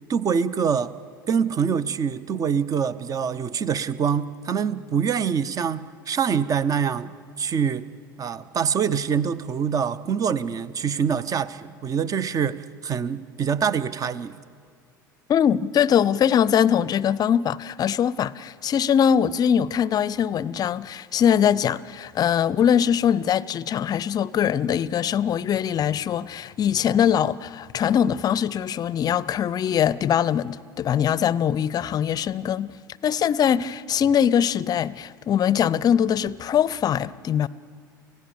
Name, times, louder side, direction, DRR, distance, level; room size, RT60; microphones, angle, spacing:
voice 1, 0.1-0.9 1.3-7.8 8.2-14.4, right 7 dB, 30° right, 0.9 m, -25 dB
voice 2, 15.3-32.7 33.0-37.5, left 9 dB, 35° left, 0.6 m, -22 dB
29.0 x 16.5 x 7.1 m
figure-of-eight pair, 70°, 11 cm